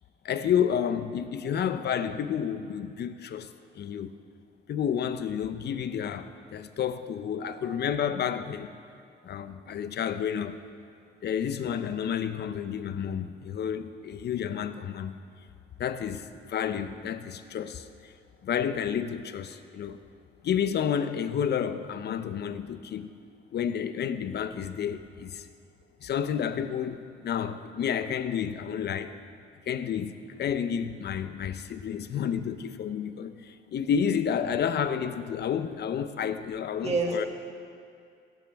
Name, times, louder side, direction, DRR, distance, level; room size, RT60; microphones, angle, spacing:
voice 1, 0.2-3.5 3.7-4.1 4.7-8.7 9.2-10.6 11.2-15.1 15.8-18.1 18.4-20.0 20.4-23.1 23.5-25.5 26.0-29.1 29.7-37.3, left 8 dB, 55° left, 11 dB, 0.7 m, -30 dB
voice 2, 7.4-7.8 36.8-37.3, right 3 dB, 35° right, -1 dB, 2.3 m, -30 dB
16.5 x 12.0 x 3.5 m, 2.3 s
cardioid pair, 90°, 20 cm